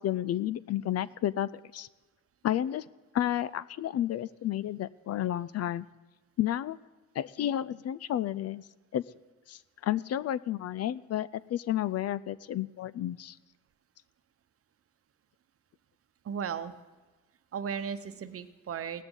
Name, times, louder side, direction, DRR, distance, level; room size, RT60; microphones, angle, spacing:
voice 1, 0.0-1.9 2.4-2.8 3.1-5.9 6.4-6.8 7.2-8.6 8.9-9.0 9.5-13.4, left 12 dB, 55° left, 19 dB, 0.5 m, -31 dB
voice 2, 16.2-16.7 17.5-19.0, right 7 dB, 50° right, 11 dB, 0.9 m, -35 dB
17.0 x 13.0 x 3.9 m, 1.2 s
cardioid pair, 90°, 30 cm